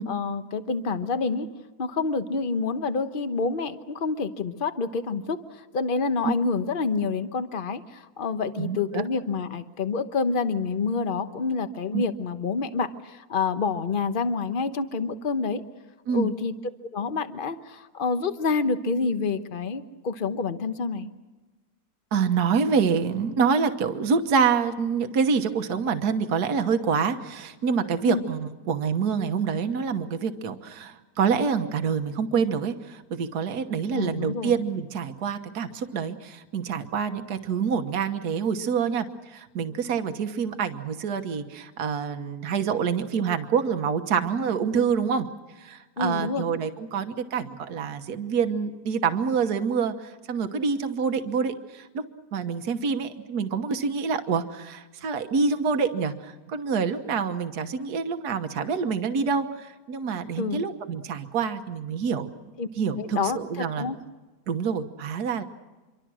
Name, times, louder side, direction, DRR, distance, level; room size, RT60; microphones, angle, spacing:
voice 1, 0.1-1.5 1.8-15.6 16.1-16.5 16.9-21.1 28.0-28.2 33.9-34.5 46.0-46.4 60.4-60.6 62.6-62.7 63.0-64.0, left 4 dB, 35° left, 10 dB, 1.1 m, -28 dB
voice 2, 8.6-9.0 11.9-12.0 16.1-16.3 22.1-45.3 45.6-52.0 52.3-62.3 62.8-63.9 64.5-65.4, right 6 dB, 65° right, 8 dB, 1.7 m, -26 dB
26.0 x 24.0 x 6.3 m, 1.2 s
omnidirectional pair, 1.8 m